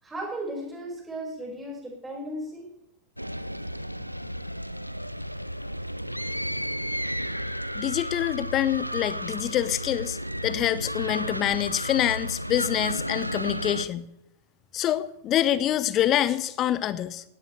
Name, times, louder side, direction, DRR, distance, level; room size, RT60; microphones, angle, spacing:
voice 1, 0.0-2.7 4.0-4.1, right 1 dB, 10° right, -3 dB, 6.1 m, -36 dB
sound 1, 3.2-13.9, equal, 90° right, 0.5 m, -33 dB
voice 2, 7.7-14.1 14.7-17.2, left 12 dB, 35° left, 16 dB, 0.9 m, -26 dB
18.5 x 17.5 x 3.5 m, 0.79 s
figure-of-eight pair, 90°, 0 cm